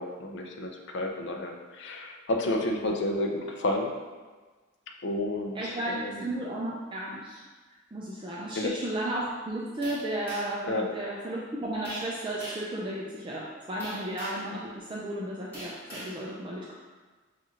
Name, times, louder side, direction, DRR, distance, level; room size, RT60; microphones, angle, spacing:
voice 1, 0.0-3.9 5.0-6.3 8.6-8.8 10.7-11.1, left 1 dB, 55° left, 2 dB, 0.5 m, -31 dB
voice 2, 5.5-7.4 7.9-16.7, right 1 dB, 25° right, -5 dB, 0.4 m, -34 dB
sound 1, 9.8-10.6 11.8-12.1 12.4-12.7 13.8-14.5 15.5-16.1, equal, 10° left, 1.5 m, -41 dB
6.0 x 2.5 x 2.8 m, 1.3 s
head